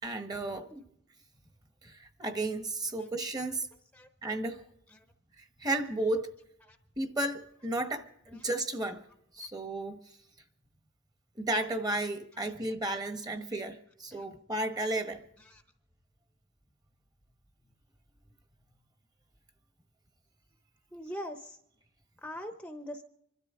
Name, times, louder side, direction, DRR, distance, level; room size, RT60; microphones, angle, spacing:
voice 1, 0.0-0.7 1.8-3.7 4.2-4.6 5.4-6.3 7.0-9.0 9.3-10.0 11.3-15.2, right 2 dB, 20° right, 7 dB, 1.2 m, -33 dB
voice 2, 20.9-21.6 22.2-23.0, equal, 5° left, 5 dB, 0.9 m, -42 dB
25.5 x 13.0 x 3.7 m, 0.72 s
head